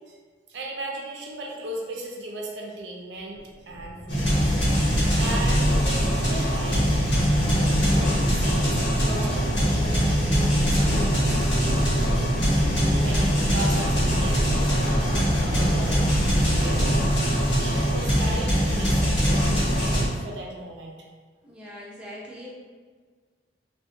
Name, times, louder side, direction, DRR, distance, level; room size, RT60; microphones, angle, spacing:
voice 1, 0.5-4.6 5.2-7.1 8.2-12.3 12.9-14.9 15.5-16.0 16.5-17.0 17.6-19.4 19.8-21.0, right 2 dB, 80° right, -1 dB, 0.4 m, -37 dB
sound 1, 3.2-17.4, equal, 35° left, 1.1 m, -36 dB
sound 2, 4.1-20.1, equal, 85° left, 1.0 m, -22 dB
voice 2, 21.4-22.5, equal, 5° right, -7 dB, 0.4 m, -41 dB
2.6 x 2.1 x 2.4 m, 1.5 s
head